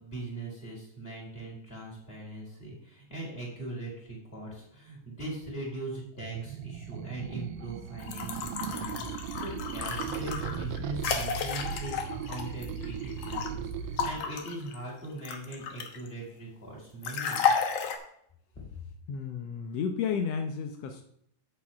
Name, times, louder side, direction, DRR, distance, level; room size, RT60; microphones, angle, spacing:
voice 1, 0.0-17.5 18.5-18.6, right 2 dB, 15° left, -3 dB, 4.3 m, -40 dB
sound 1, 6.2-14.1, right 7 dB, 85° right, 2.4 m, -37 dB
sound 2, 8.0-13.5 14.0-16.1 17.0-18.0, left 6 dB, 60° left, 1.7 m, -32 dB
voice 2, 19.1-21.0, left 6 dB, 80° left, 5 dB, 1.4 m, -32 dB
8.5 x 7.4 x 6.0 m, 0.70 s
omnidirectional pair, 4.0 m